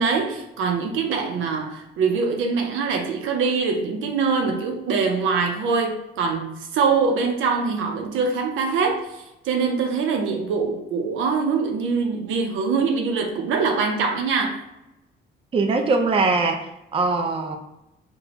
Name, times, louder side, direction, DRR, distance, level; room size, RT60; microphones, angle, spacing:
voice 1, 0.0-9.0 9.5-14.6, right 5 dB, 85° right, 3 dB, 0.6 m, -23 dB
voice 2, 15.5-17.6, right 3 dB, 30° right, 5 dB, 0.4 m, -22 dB
4.0 x 2.3 x 2.9 m, 0.89 s
cardioid pair, 90°, 20 cm